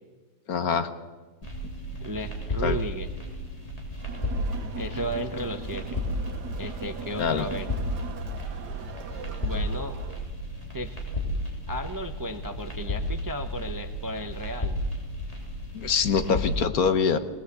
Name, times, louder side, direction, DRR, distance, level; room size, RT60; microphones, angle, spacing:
voice 1, 0.5-0.9 2.6-2.8 7.2-7.5 15.7-17.2, left 6 dB, 65° left, 10 dB, 1.5 m, -24 dB
sound 1, 1.4-16.6, left 1 dB, 20° left, 3.5 m, -33 dB
voice 2, 2.0-3.1 4.8-6.0 6.6-7.7 9.4-10.0 10.7-10.9 11.7-14.8, equal, 20° right, 7 dB, 0.6 m, -34 dB
Crowd, 4.0-10.3, right 5 dB, 85° right, 1.7 m, -40 dB
20.5 x 18.5 x 8.1 m, 1.3 s
omnidirectional pair, 1.7 m